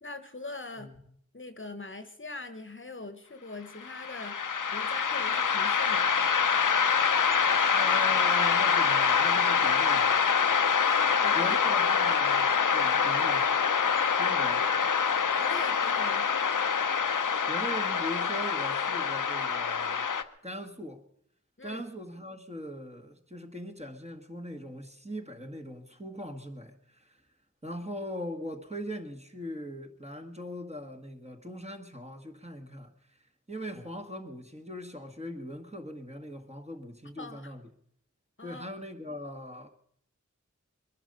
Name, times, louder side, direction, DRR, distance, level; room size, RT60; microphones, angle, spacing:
voice 1, 0.0-0.9 1.3-4.4 4.7-6.1 11.0-11.6 15.4-16.3 21.6-21.8 37.1-37.5 38.4-38.7, left 2 dB, 40° left, 1.1 m, -42 dB
voice 2, 0.8-1.1 7.7-10.2 11.3-13.5 14.2-14.7 17.5-20.1 20.4-21.0 21.6-27.2 27.6-33.2 33.5-37.6 38.4-39.7, equal, 20° right, 1.6 m, -40 dB
sound 1, 3.8-20.2, left 6 dB, 85° left, 0.7 m, -25 dB
22.0 x 10.5 x 5.4 m
wide cardioid pair, 50°, 31 cm